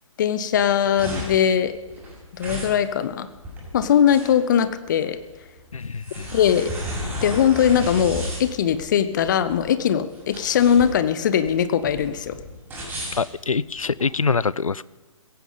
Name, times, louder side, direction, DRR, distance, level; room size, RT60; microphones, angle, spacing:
voice 1, 0.2-1.7 2.3-3.3 3.7-5.2 6.3-6.7 7.2-12.4, left 9 dB, 35° left, 12 dB, 0.9 m, -20 dB
sound 1, 0.6-14.1, equal, 10° right, 6.5 m, -34 dB
voice 2, 5.7-6.3 13.1-14.8, left 5 dB, 75° left, 21 dB, 0.5 m, -25 dB
16.5 x 15.5 x 5.4 m, 1.2 s
figure-of-eight pair, 130°, 18 cm